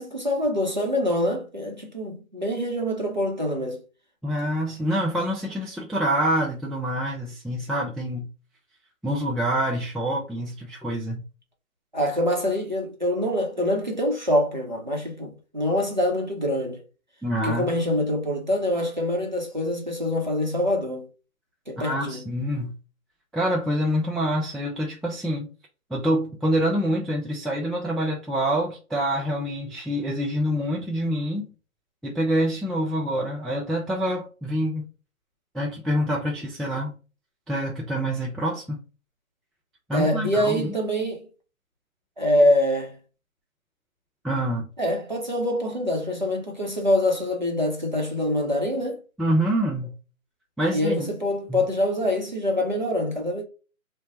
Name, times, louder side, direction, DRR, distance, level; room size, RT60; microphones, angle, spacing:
voice 1, 0.0-3.8 11.9-16.8 17.4-21.1 21.7-22.3 39.9-41.3 42.2-43.0 44.8-49.0 50.7-53.4, left 1 dB, 35° right, 0.7 m, -25 dB
voice 2, 4.2-8.3 9.0-11.2 17.2-17.7 21.8-22.7 23.3-25.5 25.9-31.5 32.0-34.8 35.5-36.9 37.5-38.8 39.9-40.7 44.2-44.7 49.2-49.9 50.6-51.1 51.5-51.6, equal, ahead, 0.4 m, -26 dB
3.0 x 2.1 x 3.7 m
hypercardioid pair, 175°, 42 cm